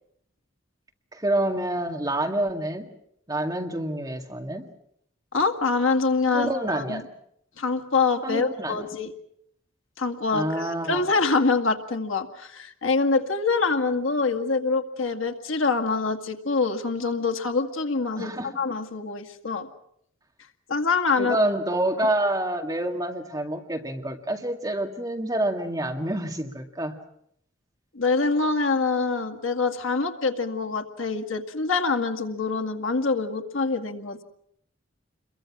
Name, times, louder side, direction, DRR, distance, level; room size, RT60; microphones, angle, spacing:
voice 1, 1.1-2.9 3.3-4.7 6.3-7.0 8.2-8.8 10.3-11.1 18.2-18.5 21.2-26.9, right 1 dB, 20° right, 3 dB, 2.1 m, -27 dB
voice 2, 5.3-7.0 7.6-9.1 10.0-19.7 20.7-21.4 27.9-34.2, left 4 dB, 85° left, 5 dB, 2.1 m, -25 dB
28.5 x 23.0 x 6.2 m, 0.71 s
head